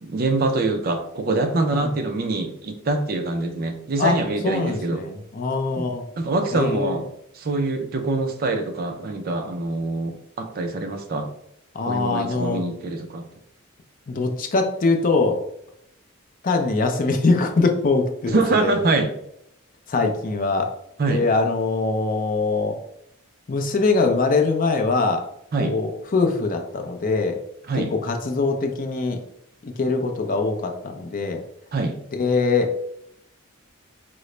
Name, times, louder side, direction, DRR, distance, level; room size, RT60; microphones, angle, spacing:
voice 1, 0.0-5.1 5.8-5.9 6.2-7.1 7.3-11.3 11.9-13.3 18.3-19.1 21.0-21.2 25.5-25.7 27.7-27.9 31.7-31.9, right 2 dB, 45° right, 7 dB, 0.4 m, -24 dB
voice 2, 4.4-6.1 6.5-7.0 11.7-12.6 14.1-15.4 16.4-18.7 19.9-20.7 21.1-22.8 23.5-25.2 25.6-27.4 27.7-29.2 29.6-31.4 32.1-32.8, left 3 dB, 40° left, 5 dB, 0.4 m, -22 dB
3.7 x 2.0 x 3.1 m, 0.74 s
head